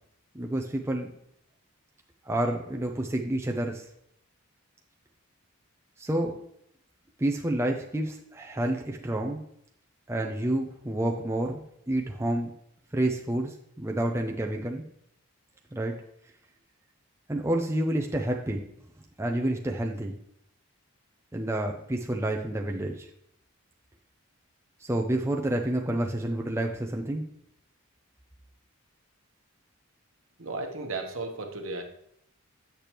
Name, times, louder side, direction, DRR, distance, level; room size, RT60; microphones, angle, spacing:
voice 1, 0.3-1.1 2.3-3.8 6.0-6.4 7.2-9.4 10.1-12.5 12.9-14.8 15.7-15.9 17.3-18.6 19.2-20.2 21.3-23.1 24.8-27.2, right 1 dB, 10° right, 1 dB, 0.5 m, -29 dB
voice 2, 30.4-31.8, right 3 dB, 65° right, 4 dB, 1.0 m, -34 dB
8.4 x 6.7 x 3.0 m, 0.72 s
head